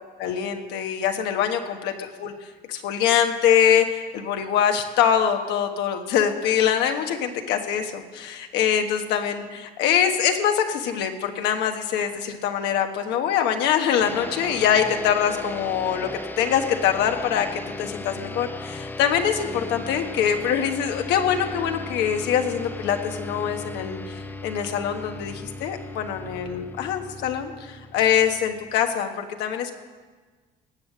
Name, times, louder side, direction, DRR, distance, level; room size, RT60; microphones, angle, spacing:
voice 1, 0.0-16.1 16.4-29.7, left 8 dB, 90° left, 5 dB, 1.3 m, -24 dB
sound 1, 14.0-28.8, left 2 dB, 10° left, 0.6 m, -36 dB
18.5 x 6.6 x 7.5 m, 1.4 s
cardioid pair, 110°, 17 cm